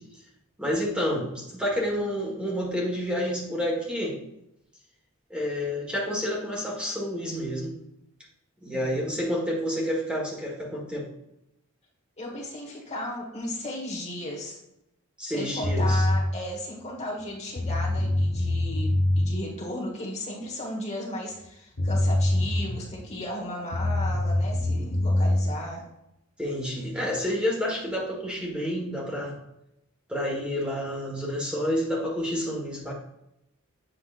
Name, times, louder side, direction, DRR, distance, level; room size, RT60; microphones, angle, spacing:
voice 1, 0.6-4.2 5.3-7.7 8.6-11.1 15.2-16.0 26.4-29.3 30.1-32.9, equal, 5° right, -3 dB, 1.5 m, -29 dB
voice 2, 8.7-9.2 12.2-14.6 15.2-25.8, left 1 dB, 30° left, -1 dB, 1.4 m, -35 dB
sound 1, 15.6-16.2 17.2-17.3 17.5-19.2 21.4-21.5 21.8-23.0 23.7-25.4, left 1 dB, 60° left, 1.1 m, -24 dB
7.7 x 5.8 x 2.5 m, 0.82 s
head